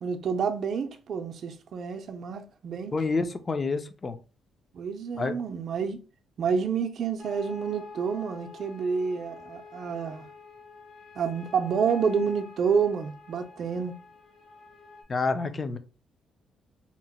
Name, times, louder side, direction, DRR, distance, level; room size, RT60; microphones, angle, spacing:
voice 1, 0.0-2.9 4.7-6.0 6.4-10.3 11.2-14.0, right 6 dB, 60° right, 0.5 m, -29 dB
voice 2, 2.9-4.2 5.2-5.3 15.1-15.8, left 4 dB, 35° left, 0.5 m, -28 dB
sound 1, 7.2-15.0, left 4 dB, 55° left, 0.9 m, -47 dB
2.8 x 2.1 x 4.1 m
cardioid pair, 90°, 0 cm